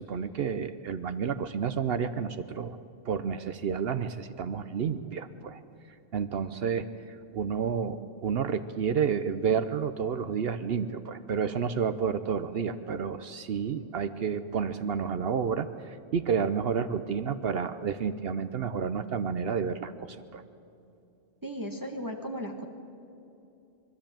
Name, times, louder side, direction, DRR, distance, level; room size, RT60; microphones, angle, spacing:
voice 1, 0.0-2.8 3.1-5.6 6.1-20.4, right 6 dB, 65° right, 11 dB, 0.9 m, -30 dB
voice 2, 21.4-22.7, equal, 20° right, 3 dB, 1.3 m, -36 dB
23.0 x 13.0 x 8.8 m, 2.7 s
omnidirectional pair, 1.2 m